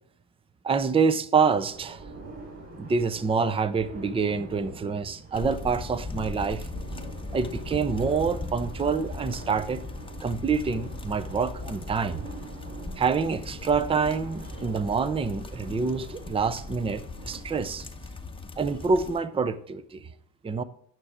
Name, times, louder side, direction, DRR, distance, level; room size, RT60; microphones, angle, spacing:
voice 1, 0.6-2.0 2.8-6.7 7.3-9.8 10.2-12.3 13.0-17.9 18.6-20.0 20.4-20.6, right 5 dB, 10° right, 0.4 m, -26 dB
sound 1, 1.7-17.4, right 3 dB, 30° right, 3.8 m, -44 dB
sound 2, 5.3-19.2, left 3 dB, 10° left, 0.8 m, -39 dB
9.4 x 5.9 x 4.9 m
supercardioid pair, 85°, 49 cm